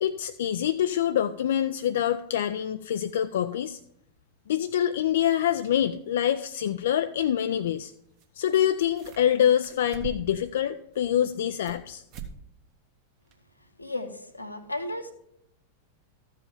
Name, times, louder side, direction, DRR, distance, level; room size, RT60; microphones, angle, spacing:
voice 1, 0.0-3.8 4.5-7.9 8.4-12.0, left 10 dB, 60° left, 10 dB, 0.3 m, -25 dB
sound 1, 8.2-8.3 8.5-9.3 9.6-10.4 10.9-11.8 12.1-12.4 12.7-12.8 13.3-13.4, right 7 dB, 40° right, 1.1 m, -42 dB
voice 2, 13.8-15.1, left 1 dB, 85° left, 7 dB, 1.0 m, -34 dB
13.5 x 4.9 x 5.7 m, 0.75 s
figure-of-eight pair, 90°, 0 cm